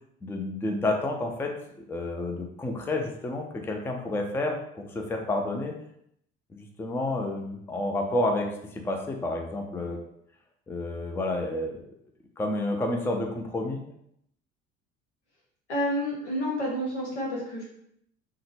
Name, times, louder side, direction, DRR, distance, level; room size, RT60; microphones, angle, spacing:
voice 1, 0.2-1.5 1.9-5.7 6.5-10.0 10.7-11.8 12.4-13.8, left 2 dB, 5° left, 3 dB, 0.4 m, -30 dB
voice 2, 15.7-17.6, equal, 80° left, -3 dB, 1.2 m, -29 dB
3.6 x 2.2 x 3.3 m, 0.73 s
figure-of-eight pair, 55°, 34 cm